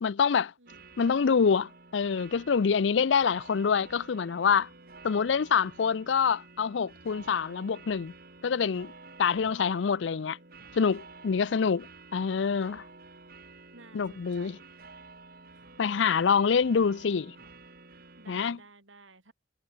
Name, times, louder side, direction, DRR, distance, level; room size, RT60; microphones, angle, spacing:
voice 1, 0.0-0.5 1.0-4.7 5.0-8.1 8.4-8.9 9.2-10.4 10.7-11.9 12.1-12.8 13.9-14.6 15.8-17.3 18.3-18.6, left 6 dB, 70° left, 0.5 m, -26 dB
voice 2, 0.6-1.0 10.9-11.8 13.7-14.7 18.2-19.3, right 3 dB, 90° right, 7.0 m, -55 dB
sound 1, 0.7-18.6, right 3 dB, 50° right, 5.4 m, -51 dB
head